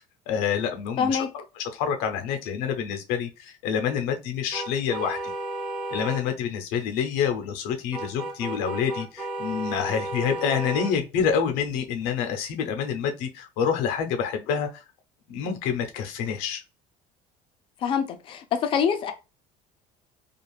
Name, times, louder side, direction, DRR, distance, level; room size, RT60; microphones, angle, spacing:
voice 1, 0.3-1.4 1.7-5.2 5.9-14.8 15.3-16.6, left 7 dB, 80° left, 0.6 m, -27 dB
voice 2, 1.0-1.3 17.8-19.1, left 7 dB, 35° left, 0.4 m, -25 dB
sound 1, 4.5-6.2 7.9-10.9, right 2 dB, ahead, 0.6 m, -33 dB
2.5 x 2.3 x 3.1 m
cardioid pair, 165°, 15 cm